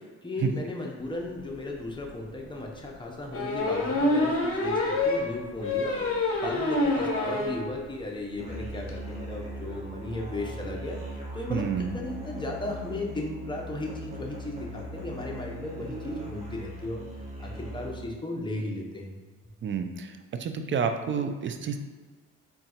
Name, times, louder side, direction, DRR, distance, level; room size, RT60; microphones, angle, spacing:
voice 1, 0.0-11.0 11.3-17.0 17.4-19.2, left 2 dB, 15° left, -1 dB, 0.8 m, -36 dB
sound 1, 1.6-1.7 2.0-2.1 3.3-7.6 8.0-8.1 8.3-8.4 8.6-8.9, left 2 dB, 50° left, 0.9 m, -26 dB
Musical instrument, 8.4-18.2, equal, 20° right, 1.2 m, -39 dB
voice 2, 11.5-11.9 19.6-20.1 20.4-21.8, right 6 dB, 40° right, 7 dB, 0.5 m, -29 dB
3.7 x 2.4 x 4.3 m, 1.4 s
cardioid pair, 90°, 30 cm